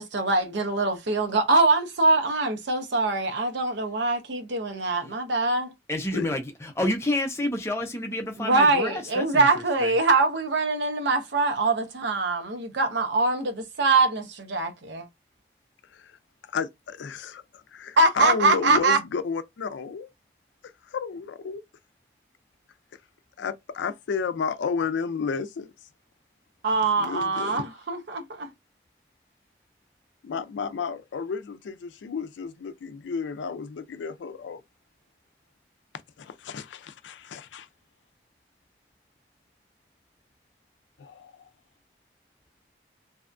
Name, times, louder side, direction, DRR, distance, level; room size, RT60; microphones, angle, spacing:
voice 1, 0.0-5.7 8.4-15.1 18.0-19.0 26.6-28.5, right 3 dB, 80° right, 0.7 m, -23 dB
voice 2, 5.9-9.5 9.8-10.0, left 1 dB, 15° left, 0.5 m, -29 dB
voice 3, 16.4-20.1 20.8-21.6 23.4-25.7 27.0-27.7 30.2-34.6 36.2-37.7 41.0-41.5, left 5 dB, 85° left, 0.4 m, -32 dB
2.7 x 2.2 x 2.5 m
head